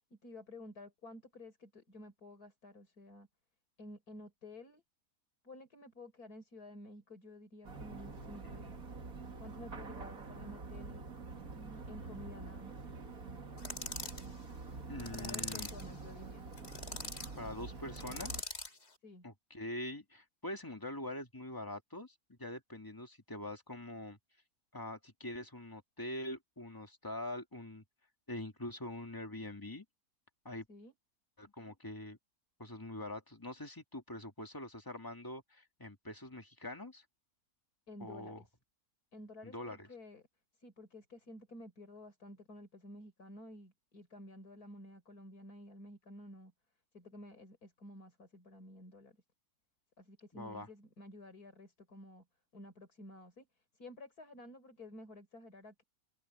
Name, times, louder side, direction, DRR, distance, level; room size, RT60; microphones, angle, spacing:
voice 1, 0.1-3.3 3.8-4.8 5.4-8.8 9.4-11.1 11.5-12.9 15.1-16.5 16.9-17.1 19.0-19.3 30.7-30.9 37.9-38.5 39.1-40.2 40.6-46.5 46.9-49.2 50.0-52.2 52.5-55.8, left 1 dB, 75° left, 5.3 m, -52 dB
sound 1, 7.6-18.4, right 4 dB, 65° right, 2.5 m, -46 dB
sound 2, 13.6-14.3 15.0-15.9 16.5-17.3 18.0-18.8, left 3 dB, 45° left, 3.4 m, -42 dB
voice 2, 14.9-15.7 17.4-18.5 19.2-24.2 24.7-27.8 28.3-29.9 30.4-30.7 31.4-32.2 32.6-37.0 38.0-38.4 39.4-39.9 50.3-50.7, left 1 dB, 15° left, 2.1 m, -44 dB
open air
omnidirectional pair, 1.6 m